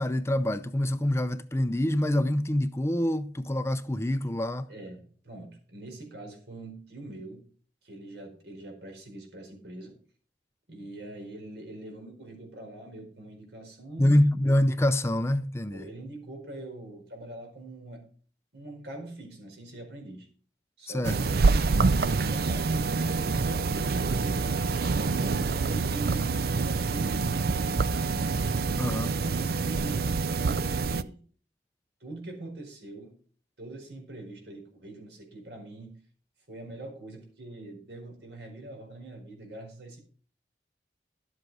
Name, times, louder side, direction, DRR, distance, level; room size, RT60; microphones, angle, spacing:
voice 1, 0.0-4.7 14.0-15.9 20.9-21.2 28.8-29.1, left 1 dB, 15° left, 0.5 m, -26 dB
voice 2, 4.7-7.4 7.8-10.0 10.7-14.2 15.7-18.1 18.5-20.3 20.8-21.1 21.4-24.9 25.3-26.3 26.5-28.2 29.4-30.2 30.4-31.2 32.0-33.2 33.6-36.0 36.5-40.0, right 2 dB, 80° right, 4.8 m, -43 dB
sound 1, 21.0-31.0, right 4 dB, 60° right, 0.5 m, -26 dB
12.0 x 7.9 x 4.8 m
head